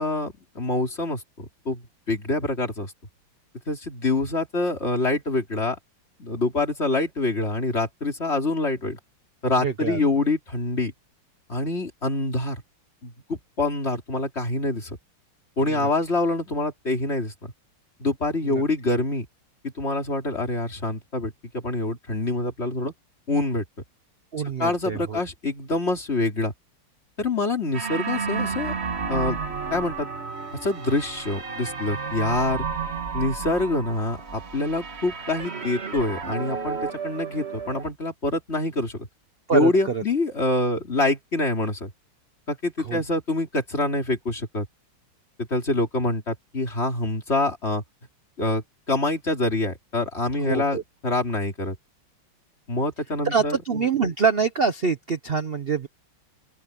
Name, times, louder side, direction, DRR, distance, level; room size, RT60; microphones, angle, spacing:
voice 1, 0.0-2.9 3.7-5.8 6.2-9.0 9.4-10.9 11.5-12.6 13.0-15.0 15.6-17.5 18.0-19.3 19.6-22.9 23.3-23.6 24.6-26.5 27.2-28.7 29.1-29.4 29.7-30.1 30.6-32.7 33.1-36.8 37.0-39.0 39.5-41.9 42.5-44.7 45.5-47.8 48.4-51.8 52.7-53.6, left 2 dB, 30° left, 3.7 m, -26 dB
voice 2, 9.6-10.0 15.8-15.9 18.5-18.6 24.3-25.2 39.5-40.0 42.8-43.0 50.4-50.8 53.2-55.9, right 5 dB, 70° right, 0.5 m, -25 dB
sound 1, 27.7-37.9, right 5 dB, 30° right, 1.6 m, -32 dB
open air
omnidirectional pair, 2.4 m